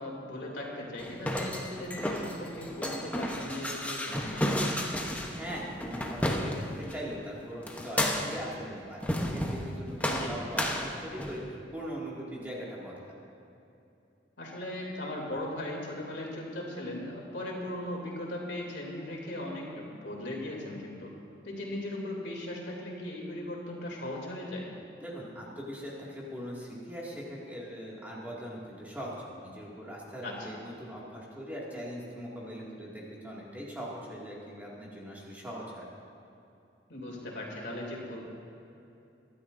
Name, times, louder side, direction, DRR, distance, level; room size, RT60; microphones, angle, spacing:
voice 1, 0.0-4.7 10.0-10.3 14.4-21.1 21.4-24.7 30.2-30.5 36.9-38.2, left 1 dB, 70° left, -2 dB, 3.0 m, -38 dB
sound 1, 1.0-7.0 7.7-8.5 9.0-9.7 10.0-11.5, left 1 dB, 10° left, 0.9 m, -32 dB
voice 2, 5.4-9.0 9.3-11.4 11.7-13.1 25.0-35.8, equal, 10° right, -6 dB, 2.2 m, -41 dB
23.5 x 12.5 x 2.6 m, 2.8 s
head